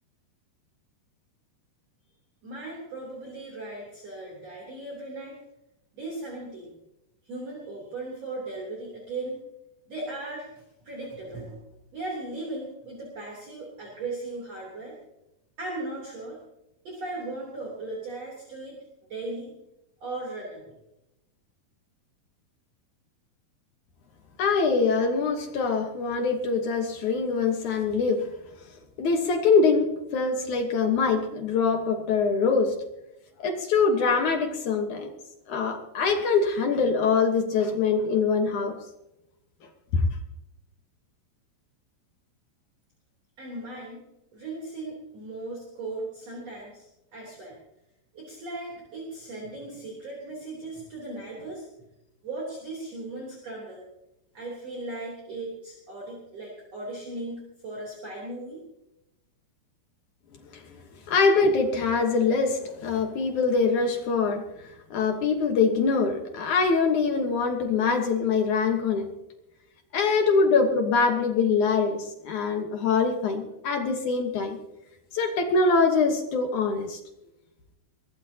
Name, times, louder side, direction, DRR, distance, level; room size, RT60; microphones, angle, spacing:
voice 1, 2.4-5.4 5.9-6.7 7.2-9.4 9.9-11.6 11.9-15.0 15.6-16.4 16.8-18.8 19.1-19.5 20.0-20.7 43.4-44.1 44.3-47.6 48.1-51.7 52.2-53.9 54.3-58.6, right 2 dB, 40° right, -3 dB, 4.2 m, -37 dB
voice 2, 24.4-28.3 29.0-32.8 33.4-35.1 35.5-38.8 39.9-40.0 60.5-60.6 61.1-64.5 64.9-69.1 69.9-74.6 75.1-77.0, left 4 dB, 60° left, 4 dB, 2.2 m, -24 dB
23.0 x 17.0 x 2.9 m, 0.89 s
omnidirectional pair, 4.8 m